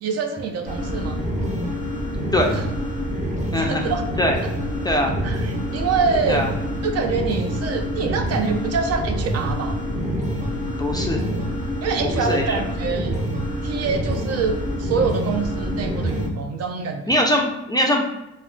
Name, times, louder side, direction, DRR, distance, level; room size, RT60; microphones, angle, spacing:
voice 1, 0.0-1.2 2.4-2.6 3.5-4.0 5.2-6.5 6.8-9.8 11.8-13.2 13.6-17.1, right 5 dB, 55° right, 6 dB, 0.4 m, -25 dB
sound 1, 0.7-16.3, equal, 25° right, 0.8 m, -26 dB
voice 2, 3.5-3.9 4.2-4.4 4.8-5.1 6.3-6.5 10.6-11.2 12.0-12.4 17.1-18.0, left 1 dB, 15° left, 1 dB, 0.3 m, -21 dB
2.3 x 2.1 x 3.7 m, 0.93 s
cardioid pair, 90°, 30 cm